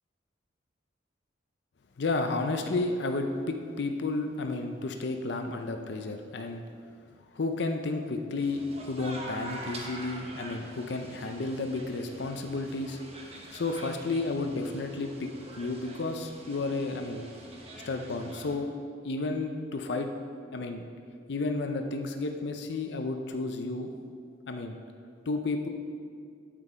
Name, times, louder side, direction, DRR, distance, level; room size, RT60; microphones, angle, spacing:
voice 1, 2.0-6.6 7.3-13.0 13.5-15.3 15.6-17.2 17.8-18.7 19.0-20.1 20.5-20.9 21.3-23.9 24.5-24.8 25.3-25.7, left 3 dB, 65° left, 5 dB, 0.5 m, -32 dB
sound 1, 8.4-18.6, right 1 dB, 35° right, 0.9 m, -45 dB
8.1 x 7.5 x 5.0 m, 2.2 s
head